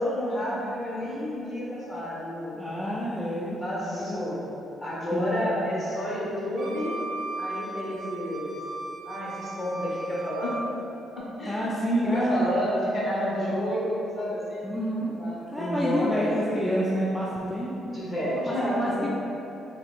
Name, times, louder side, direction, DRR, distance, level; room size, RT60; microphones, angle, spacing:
voice 1, 0.0-2.7 3.6-4.5 4.8-7.0 7.4-8.5 9.0-10.6 11.1-14.7 15.2-16.3 17.9-19.1, equal, 40° left, -7 dB, 1.3 m, -30 dB
voice 2, 2.6-4.3 5.1-5.9 11.5-12.7 14.6-15.2 15.5-18.0 18.5-19.0, equal, 10° left, -6 dB, 0.4 m, -28 dB
Wind instrument woodwind instrument, 6.6-10.6, right 2 dB, 65° right, 0.6 m, -37 dB
3.7 x 2.8 x 3.5 m, 3.0 s
cardioid pair, 90°, 0 cm